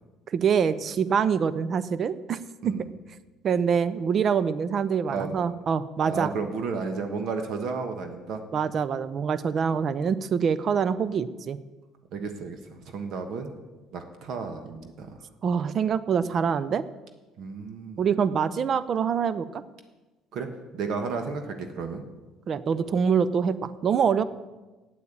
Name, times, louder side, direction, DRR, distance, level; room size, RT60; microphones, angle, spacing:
voice 1, 0.3-2.9 3.4-6.3 8.5-11.6 15.4-16.8 18.0-19.6 22.5-24.2, right 7 dB, 40° right, 16 dB, 0.5 m, -25 dB
voice 2, 6.0-8.4 12.1-13.5 13.9-15.1 17.4-18.0 20.3-20.5 20.7-22.0, right 4 dB, 60° right, 6 dB, 1.4 m, -32 dB
8.6 x 8.5 x 8.6 m, 1.2 s
cardioid pair, 130°, 0 cm